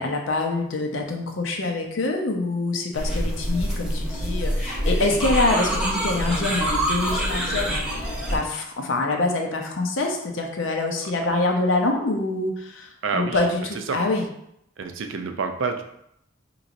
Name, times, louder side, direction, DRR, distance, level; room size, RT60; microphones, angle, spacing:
voice 1, 0.0-14.2, left 2 dB, 75° left, 1 dB, 0.6 m, -25 dB
sound 1, 2.9-8.4, equal, 5° right, 0.8 m, -25 dB
voice 2, 13.0-13.4 13.9-14.0 14.8-15.8, right 4 dB, 75° right, 6 dB, 0.4 m, -28 dB
3.9 x 3.0 x 2.5 m, 0.75 s
head